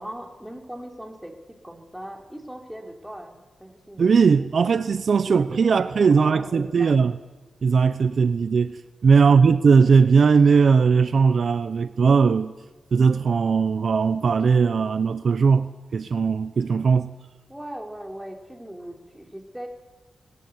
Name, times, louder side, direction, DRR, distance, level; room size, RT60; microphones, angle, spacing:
voice 1, 0.0-4.6 5.3-5.7 6.2-6.9 9.2-9.4 17.5-19.7, right 1 dB, 5° right, 4.1 m, -39 dB
voice 2, 4.0-7.1 7.6-12.5 12.9-17.1, right 5 dB, 60° right, 0.9 m, -19 dB
20.5 x 19.0 x 9.7 m
cardioid pair, 90°, 0 cm